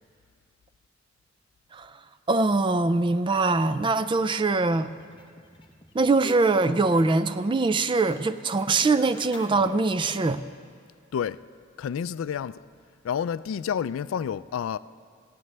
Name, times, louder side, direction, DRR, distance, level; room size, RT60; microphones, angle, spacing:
voice 1, 2.3-4.9 5.9-10.4, right 3 dB, 25° right, 0.4 m, -23 dB
sound 1, 4.7-7.4 7.6-10.4, left 1 dB, 25° left, 0.9 m, -47 dB
voice 2, 11.8-12.6 13.0-14.8, left 8 dB, 80° left, 0.3 m, -29 dB
18.5 x 16.0 x 3.3 m
head